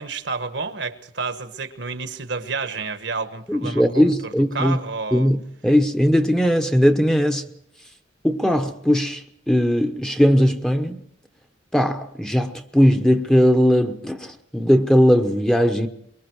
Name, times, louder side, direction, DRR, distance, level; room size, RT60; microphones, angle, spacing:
voice 1, 0.0-5.3, right 4 dB, 65° right, 1.4 m, -30 dB
voice 2, 3.5-4.8 5.1-7.5 8.2-9.2 9.5-11.0 11.7-15.9, equal, 5° left, 0.9 m, -19 dB
24.0 x 23.0 x 4.7 m
head